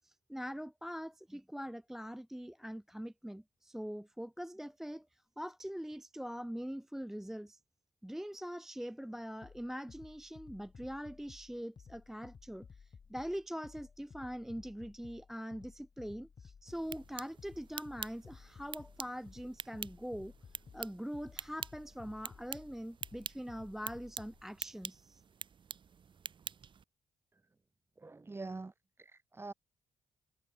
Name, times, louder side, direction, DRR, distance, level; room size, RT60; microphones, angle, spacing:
voice 1, 0.0-7.6 8.0-20.3 20.7-25.2, equal, 5° right, 0.4 m, -43 dB
sound 1, 9.4-24.4, left 5 dB, 45° left, 1.8 m, -56 dB
sound 2, 16.7-26.8, right 7 dB, 50° right, 1.2 m, -47 dB
voice 2, 28.0-28.7 29.0-29.5, right 3 dB, 20° right, 1.1 m, -44 dB
supercardioid pair, 70°, 11 cm